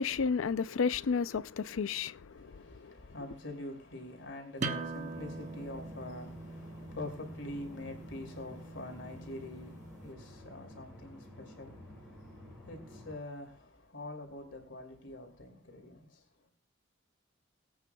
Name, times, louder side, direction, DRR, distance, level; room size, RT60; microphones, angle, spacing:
voice 1, 0.0-2.9, left 5 dB, 90° left, 0.5 m, -32 dB
voice 2, 2.3-16.2, left 2 dB, 65° left, 2.8 m, -45 dB
sound 1, 4.6-10.0, right 3 dB, 35° right, 1.0 m, -42 dB
sound 2, 5.0-13.2, left 1 dB, ahead, 5.5 m, -52 dB
22.0 x 8.9 x 2.3 m
head